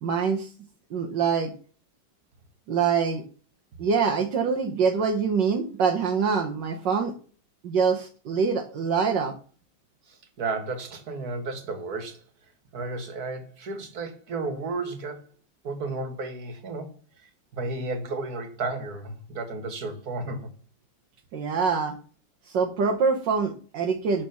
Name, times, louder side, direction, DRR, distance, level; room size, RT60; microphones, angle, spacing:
voice 1, 0.0-0.5 0.9-1.5 2.7-3.2 3.8-7.1 7.6-9.3 21.3-21.9 22.4-24.3, right 5 dB, 75° right, 1.7 m, -24 dB
voice 2, 10.1-12.2 12.7-15.3 15.6-16.9 17.2-20.5, right 3 dB, 55° right, 2.2 m, -33 dB
12.0 x 4.3 x 7.0 m
omnidirectional pair, 2.0 m